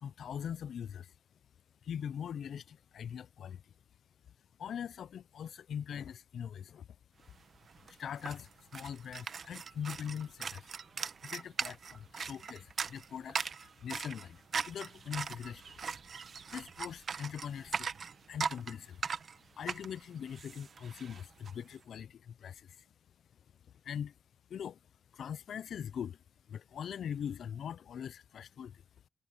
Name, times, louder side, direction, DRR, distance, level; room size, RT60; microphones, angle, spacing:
voice 1, 0.0-1.1 1.8-3.7 4.6-6.9 7.8-10.7 11.2-14.4 14.7-15.9 16.5-17.9 18.3-19.0 19.6-22.9 23.8-24.2 24.5-24.8 25.1-28.8, left 8 dB, 80° left, 0.4 m, -42 dB
sound 1, 7.4-7.5 7.7-21.5, right 6 dB, 50° right, 0.8 m, -40 dB
wide cardioid pair, 130°, 0 cm